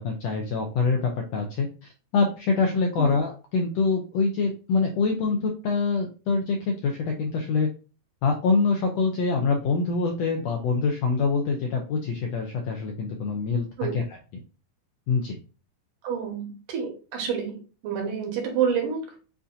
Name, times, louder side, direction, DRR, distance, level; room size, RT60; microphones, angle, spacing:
voice 1, 0.0-7.7 8.2-13.7 13.9-14.0 15.1-15.3, left 4 dB, 85° left, 2 dB, 1.5 m, -25 dB
voice 2, 16.0-17.6 17.8-19.2, right 7 dB, 85° right, 2 dB, 2.8 m, -28 dB
7.2 x 2.6 x 2.6 m, 0.34 s
omnidirectional pair, 3.7 m